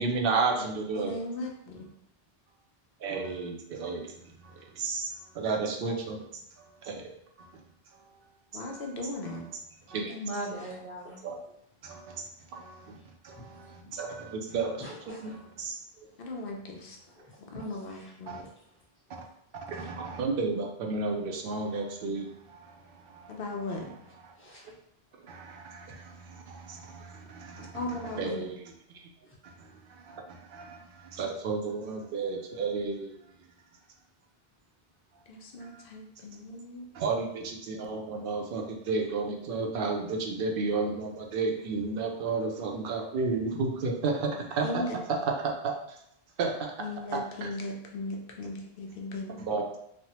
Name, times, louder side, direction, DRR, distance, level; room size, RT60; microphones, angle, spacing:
voice 1, 0.0-1.1 3.0-4.1 4.4-6.2 6.6-7.1 8.5-8.8 9.2-9.6 9.9-10.1 11.2-11.4 11.8-15.8 18.3-18.4 19.7-23.4 23.7-23.9 24.2-24.3 25.3-28.6 29.4-33.2 35.6-35.8 36.9-45.7 46.4-46.7 47.1-47.5 49.4-49.8, right 4 dB, 65° right, 2 dB, 0.7 m, -33 dB
voice 2, 1.0-1.9 5.5-5.6 8.5-9.4 16.2-17.0 17.5-18.4 23.3-23.9 27.7-28.4 35.3-36.9 44.6-45.0 46.8-49.4, left 2 dB, 65° left, 1 dB, 0.7 m, -37 dB
voice 3, 10.1-11.2 14.8-15.3 17.9-18.1 18.4-18.5 24.4-24.7, right 1 dB, 10° left, -9 dB, 1.0 m, -40 dB
3.2 x 2.0 x 2.8 m, 0.75 s
omnidirectional pair, 1.0 m